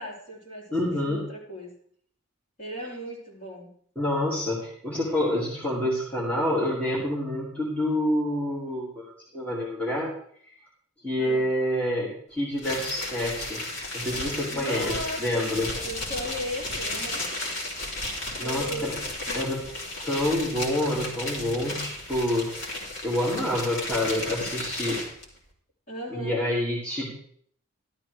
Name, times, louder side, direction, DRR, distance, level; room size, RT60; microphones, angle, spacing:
voice 1, 0.0-1.7 2.6-3.7 11.2-11.5 14.5-15.5 15.8-17.2 18.4-18.9 19.3-19.4 25.9-26.4, equal, 40° left, -5 dB, 3.8 m, -36 dB
voice 2, 0.7-1.2 4.0-10.1 10.5-10.6 11.0-13.6 13.9-14.9 15.2-15.7 18.4-19.0 19.3-19.6 20.0-22.5 23.0-25.0 26.1-27.2, left 1 dB, 5° left, -6 dB, 2.1 m, -27 dB
sound 1, 12.6-25.2, left 1 dB, 70° left, 2.8 m, -34 dB
13.0 x 11.5 x 3.3 m, 0.62 s
head